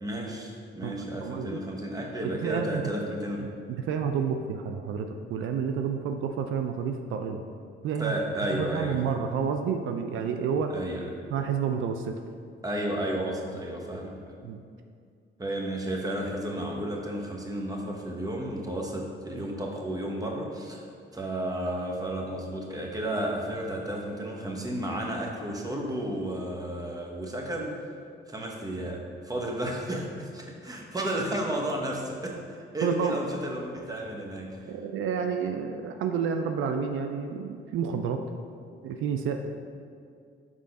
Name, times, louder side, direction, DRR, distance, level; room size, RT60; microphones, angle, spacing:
voice 1, 0.0-3.5 8.0-9.1 10.7-11.1 12.6-14.4 15.4-20.8 21.1-27.9 28.3-34.6, right 1 dB, 20° right, 0 dB, 1.1 m, -32 dB
voice 2, 1.2-1.6 2.2-2.8 3.9-7.4 7.8-8.1 8.5-10.8 11.3-12.1 14.4-14.6 32.8-33.2 34.7-38.2 38.8-39.4, right 6 dB, 80° right, 6 dB, 0.4 m, -29 dB
6.2 x 3.7 x 5.2 m, 2.3 s
cardioid pair, 90°, 20 cm